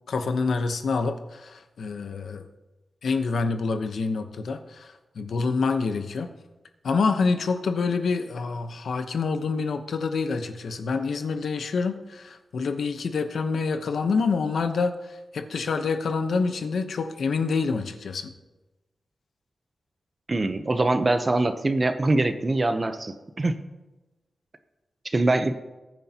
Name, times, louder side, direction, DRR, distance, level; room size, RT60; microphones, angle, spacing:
voice 1, 0.1-2.5 3.0-6.3 6.8-18.3, left 4 dB, 75° left, 8 dB, 0.9 m, -27 dB
voice 2, 20.3-23.5 25.0-25.6, right 2 dB, 30° right, 9 dB, 0.8 m, -23 dB
20.5 x 9.2 x 2.9 m, 1.1 s
wide cardioid pair, 140°, 0 cm